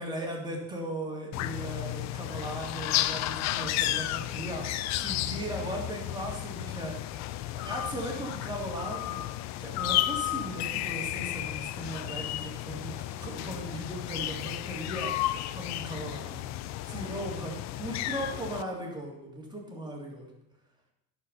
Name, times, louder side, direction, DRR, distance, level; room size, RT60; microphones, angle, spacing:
voice 1, 0.0-7.0 7.5-9.3 9.6-16.5 16.9-20.3, right 1 dB, 10° right, -2 dB, 3.0 m, -38 dB
sound 1, 1.3-18.6, left 14 dB, 40° left, 0.4 m, -33 dB
11.0 x 5.1 x 5.6 m, 0.84 s
hypercardioid pair, 90°, 43 cm